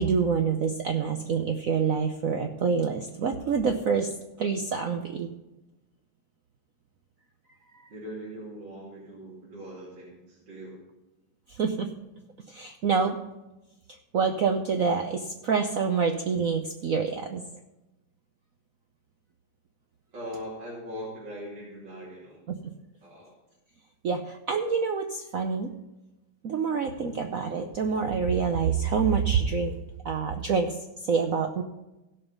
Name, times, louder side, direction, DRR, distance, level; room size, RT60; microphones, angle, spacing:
voice 1, 0.0-4.1 4.4-5.3 11.5-11.9 12.5-13.2 14.1-17.4 22.5-22.6 24.0-25.7 26.4-29.7 30.0-30.7 31.1-31.6, right 5 dB, 80° right, 5 dB, 0.7 m, -26 dB
voice 2, 7.9-10.8 20.1-22.4 23.0-23.4 26.8-27.2, equal, 55° right, -6 dB, 3.2 m, -41 dB
16.5 x 5.6 x 5.4 m, 0.98 s
omnidirectional pair, 2.4 m